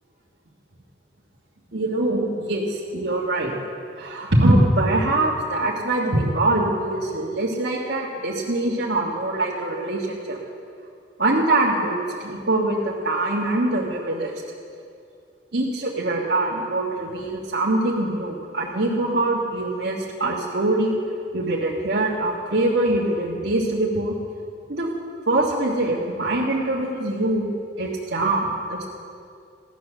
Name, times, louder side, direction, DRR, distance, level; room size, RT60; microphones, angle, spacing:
voice 1, 1.7-3.5 4.0-10.4 11.2-14.3 15.5-20.9 21.3-24.2 24.7-24.9 25.3-27.4 27.8-28.4 28.7-28.8, right 2 dB, 70° right, -7 dB, 1.8 m, -23 dB
16.5 x 10.5 x 6.9 m, 2.4 s
head